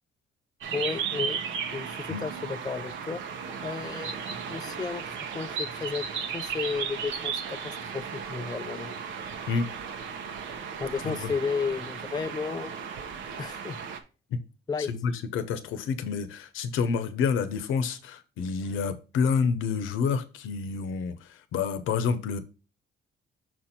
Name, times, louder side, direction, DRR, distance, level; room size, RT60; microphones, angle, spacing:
sound 1, 0.6-14.0, right 6 dB, 75° right, 1.0 m, -35 dB
voice 1, 0.7-1.4 1.7-3.2 3.6-5.0 5.3-6.1 6.3-9.0 10.8-12.7 13.4-13.8 14.7-14.9, left 5 dB, 20° left, 0.4 m, -33 dB
voice 2, 14.8-21.2 21.5-22.4, left 5 dB, 90° left, 0.9 m, -28 dB
6.2 x 4.4 x 4.3 m
cardioid pair, 90°, 20 cm